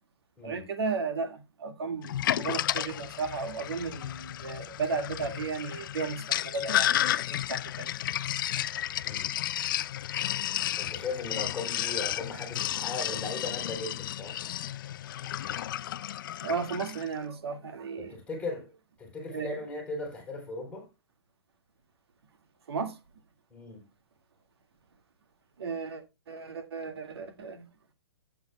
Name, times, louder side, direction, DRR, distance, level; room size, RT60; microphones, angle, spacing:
voice 1, 0.4-8.0 13.8-13.9 16.4-18.2 19.3-19.6 22.7-23.0 25.6-27.7, right 5 dB, 70° right, 1.9 m, -35 dB
Sink (filling or washing), 2.0-17.1, left 12 dB, 55° left, 0.4 m, -32 dB
voice 2, 9.0-9.3 10.8-14.4 18.0-18.7 19.0-20.9 23.5-23.8, left 3 dB, 10° left, 3.9 m, -37 dB
15.5 x 8.0 x 2.2 m
hypercardioid pair, 135°, 13 cm